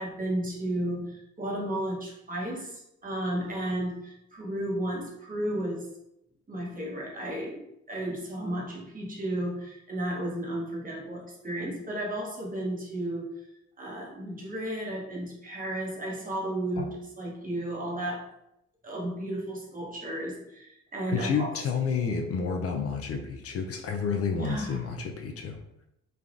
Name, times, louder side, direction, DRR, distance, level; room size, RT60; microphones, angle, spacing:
voice 1, 0.0-5.9 6.5-7.6 7.9-13.3 13.8-18.3 18.8-21.5 24.4-24.9, right 1 dB, 30° right, -2 dB, 0.9 m, -33 dB
voice 2, 21.1-25.6, left 5 dB, 50° left, 3 dB, 0.4 m, -30 dB
3.3 x 2.4 x 2.4 m, 0.81 s
cardioid pair, 90°, 30 cm